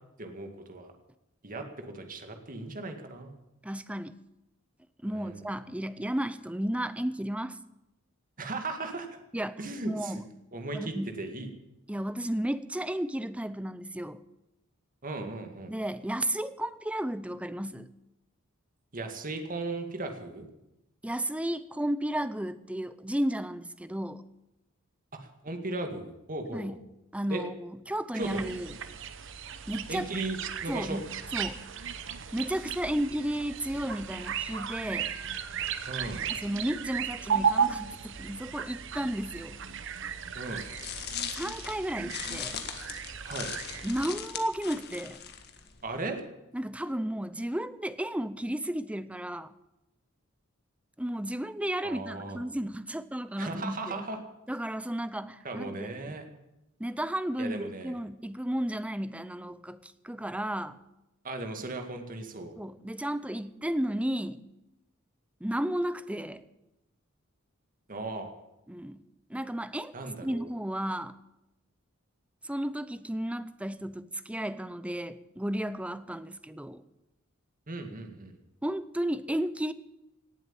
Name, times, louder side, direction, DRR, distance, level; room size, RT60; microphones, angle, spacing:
voice 1, 0.2-0.9 1.4-3.3 5.1-5.4 8.4-9.1 9.6-10.2 10.5-11.5 15.0-15.7 18.9-20.5 25.1-26.8 27.3-27.4 28.1-28.4 29.9-31.0 35.9-36.3 40.4-40.7 43.2-43.5 45.8-46.2 51.8-52.4 53.4-54.2 55.4-56.2 57.4-58.0 61.2-62.5 67.9-68.3 69.9-70.5 77.7-78.4, right 2 dB, 40° right, 5 dB, 2.0 m, -37 dB
voice 2, 3.6-4.2 5.0-7.6 9.3-9.6 9.8-10.3 10.7-11.2 11.9-14.2 15.7-17.9 21.0-24.2 26.5-26.8 27.1-28.7 29.7-30.1 30.7-31.6 32.3-35.1 36.4-39.6 41.3-42.6 43.8-45.2 46.5-49.5 51.0-54.0 54.5-55.9 56.8-60.8 62.6-64.4 65.4-66.4 68.7-69.0 69.3-69.9 70.2-71.2 72.4-76.8 78.6-79.7, right 1 dB, 5° right, 14 dB, 0.6 m, -33 dB
sound 1, 28.2-44.1, right 7 dB, 65° right, 1.0 m, -35 dB
sound 2, 40.5-46.0, left 8 dB, 50° left, 1.7 m, -39 dB
18.0 x 7.9 x 8.9 m, 0.92 s
head